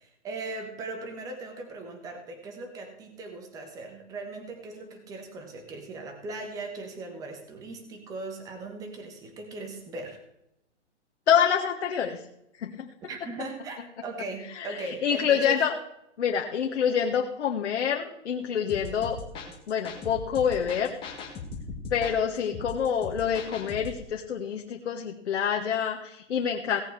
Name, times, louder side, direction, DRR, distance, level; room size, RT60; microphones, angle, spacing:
voice 1, 0.0-10.2 13.1-15.6 19.3-19.6, right 3 dB, 10° right, 4 dB, 1.3 m, -39 dB
voice 2, 11.3-12.2 12.6-12.9 14.6-14.7 15.0-15.7 16.2-19.2 19.7-20.9 21.9-26.8, left 8 dB, 65° left, 2 dB, 1.5 m, -26 dB
sound 1, 18.7-24.0, left 4 dB, 15° left, 1.7 m, -39 dB
17.5 x 7.9 x 4.7 m, 0.84 s
hypercardioid pair, 165°, 36 cm